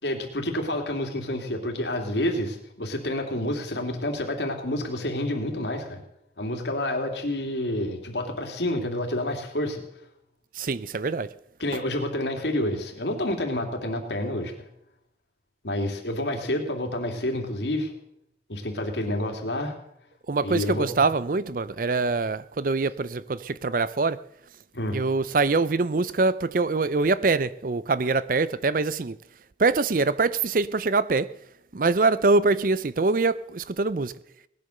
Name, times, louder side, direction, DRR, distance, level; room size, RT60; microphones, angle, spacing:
voice 1, 0.0-6.0 6.4-9.8 11.6-14.5 15.6-17.9 18.5-19.7 20.4-20.9 24.7-25.0, left 1 dB, 75° left, 3.0 m, -29 dB
voice 2, 10.6-11.3 20.3-24.2 24.9-29.2 29.6-31.3 31.7-34.1, right 3 dB, 50° right, 0.5 m, -24 dB
19.0 x 10.5 x 6.6 m
head